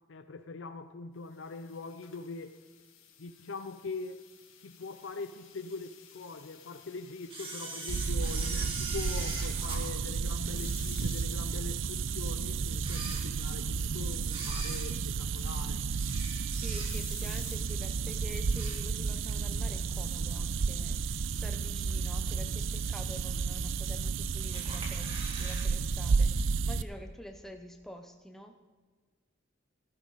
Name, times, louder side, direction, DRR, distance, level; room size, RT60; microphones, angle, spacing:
voice 1, 0.1-2.6 3.2-4.2 4.6-15.9, left 3 dB, 70° left, 0.6 m, -42 dB
sound 1, 1.3-18.8, left 9 dB, 85° left, 1.9 m, -55 dB
Camera, 7.3-10.9 11.4-11.5 12.2-12.3 12.7-13.7 14.2-17.2 17.6-17.9 18.2-19.3 19.6-19.7 20.7-20.8 21.3-21.7 22.2-22.3 22.4-22.5 22.7-22.8 23.6-24.1 24.5-25.7 25.9-26.0 26.3-26.4, right 2 dB, 25° right, 2.6 m, -42 dB
sound 2, 7.9-26.8, right 5 dB, 75° right, 0.5 m, -32 dB
voice 2, 16.5-28.5, equal, ahead, 0.8 m, -48 dB
19.0 x 12.0 x 4.1 m
head